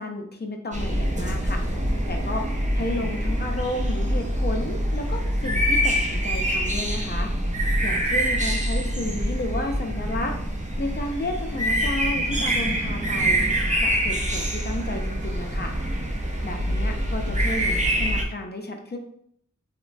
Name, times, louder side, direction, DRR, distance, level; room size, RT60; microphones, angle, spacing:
voice 1, 0.0-1.6 2.1-2.5 2.7-7.3 7.8-10.4 10.8-13.5 13.8-15.7 16.4-19.0, left 2 dB, 35° left, 3 dB, 0.5 m, -32 dB
sound 1, 0.7-18.2, equal, 25° right, 0.5 m, -25 dB
3.0 x 2.1 x 2.5 m, 0.68 s
wide cardioid pair, 40°, 30 cm